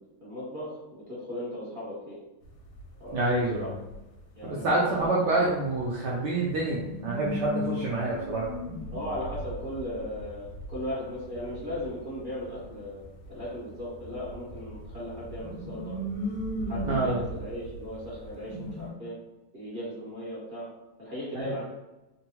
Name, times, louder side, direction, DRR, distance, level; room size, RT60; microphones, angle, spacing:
voice 1, 0.0-2.2 3.0-3.7 4.3-5.4 8.9-16.0 16.7-19.1 19.5-20.7 21.0-21.6, left 1 dB, 35° right, -10 dB, 0.9 m, -37 dB
sound 1, 2.5-2.8 3.1-4.0 5.0-5.1 5.5-5.6 5.7-5.8 6.5-13.7 14.0-18.9, equal, 85° left, 1.5 m, -37 dB
voice 2, 3.1-3.7 4.4-8.5 16.9-17.2 21.3-21.5, right 2 dB, 80° right, -5 dB, 0.9 m, -27 dB
3.6 x 2.2 x 2.8 m, 1.0 s
omnidirectional pair, 2.4 m